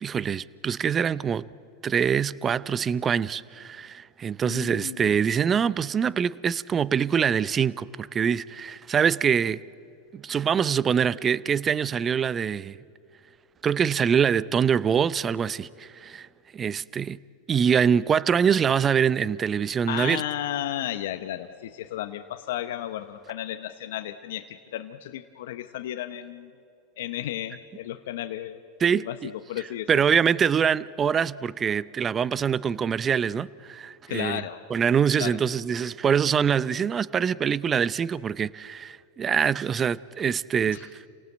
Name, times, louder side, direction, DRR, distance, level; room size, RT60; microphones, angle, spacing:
voice 1, 0.0-1.5 1.8-9.6 10.1-12.8 13.6-16.3 16.5-17.2 17.5-20.2 28.8-29.1 29.9-34.4 34.7-40.9, right 7 dB, 25° right, 0.6 m, -24 dB
voice 2, 4.4-5.2 19.9-26.5 27.0-28.6 28.9-30.0 34.1-34.6 35.2-35.4 40.7-40.9, left 12 dB, 75° left, 0.9 m, -33 dB
28.0 x 18.0 x 7.9 m
hypercardioid pair, 105°, 0 cm